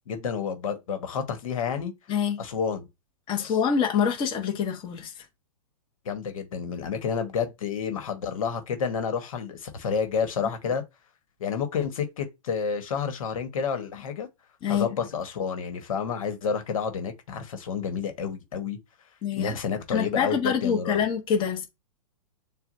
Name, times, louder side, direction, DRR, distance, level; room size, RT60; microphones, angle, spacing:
voice 1, 0.1-1.9 2.4-2.9 3.4-3.5 6.0-10.8 11.4-14.3 14.7-18.8 19.3-21.0, left 6 dB, 70° left, 1.4 m, -30 dB
voice 2, 3.3-5.2 14.6-14.9 19.2-19.6 19.9-21.7, left 7 dB, 25° left, 1.2 m, -26 dB
7.0 x 2.4 x 2.7 m
hypercardioid pair, 125°, 18 cm